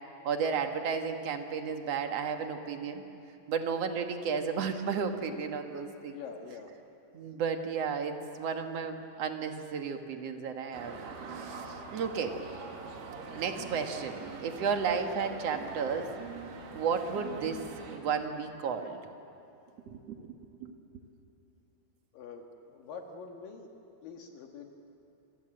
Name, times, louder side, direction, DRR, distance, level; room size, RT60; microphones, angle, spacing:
voice 1, 0.2-3.0 3.5-6.2 7.1-11.0 11.3-12.4 13.3-16.1 16.7-17.6 17.9-19.0 19.9-20.4 20.6-20.7, right 6 dB, 50° right, 5 dB, 2.1 m, -33 dB
voice 2, 6.1-6.7 22.1-24.7, left 5 dB, 65° left, 3 dB, 3.0 m, -45 dB
sound 1, 10.7-18.0, right 5 dB, 85° right, 4.2 m, -43 dB
27.5 x 26.0 x 7.8 m, 2.8 s
omnidirectional pair, 4.6 m